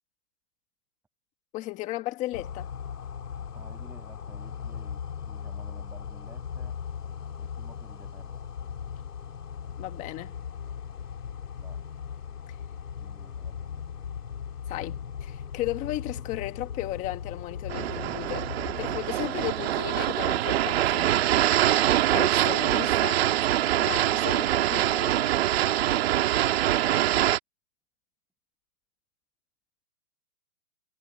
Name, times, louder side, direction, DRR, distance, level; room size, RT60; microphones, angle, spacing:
voice 1, 1.5-2.7 9.8-10.4 12.5-12.6 14.7-18.5 18.8-21.2 22.1-23.2 23.7-25.3, left 17 dB, 15° left, 1.6 m, -35 dB
sound 1, 2.3-19.1, left 7 dB, 70° left, 5.0 m, -38 dB
voice 2, 3.5-6.8 7.4-8.4 11.5-11.8 13.0-13.8, right 3 dB, 5° right, 7.5 m, -53 dB
sound 2, 17.7-27.4, right 13 dB, 40° right, 1.8 m, -24 dB
hypercardioid pair, 155°, 48 cm